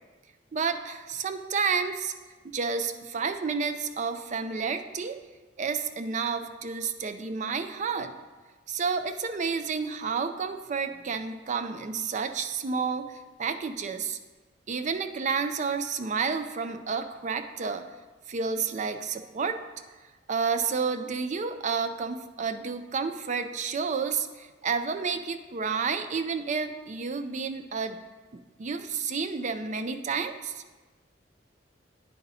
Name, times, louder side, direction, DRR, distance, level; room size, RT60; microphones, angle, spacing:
voice 1, 0.5-2.1 2.5-5.2 5.6-8.1 8.7-14.2 14.7-17.8 18.3-19.6 20.3-28.0 28.3-30.6, right 5 dB, 40° right, 9 dB, 0.4 m, -30 dB
9.7 x 4.1 x 4.1 m, 1.3 s
head